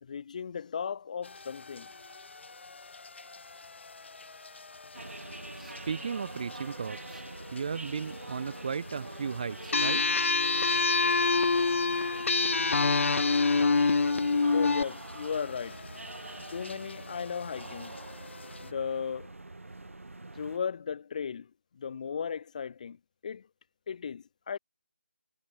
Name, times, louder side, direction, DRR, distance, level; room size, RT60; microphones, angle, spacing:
voice 1, 0.0-1.9 14.0-14.1 14.5-15.9 16.5-18.0 18.6-19.3 20.3-23.0 23.2-23.5 23.9-24.6, left 6 dB, 35° left, 1.4 m, -36 dB
sound 1, 1.2-18.7, left 4 dB, 60° left, 2.3 m, -49 dB
sound 2, 4.9-20.6, right 2 dB, 90° right, 5.5 m, -45 dB
voice 2, 5.6-7.2 7.5-10.0, right 6 dB, 35° right, 0.4 m, -35 dB
sound 3, 9.7-14.8, left 4 dB, 80° left, 0.4 m, -25 dB
figure-of-eight pair, 165°, 7 cm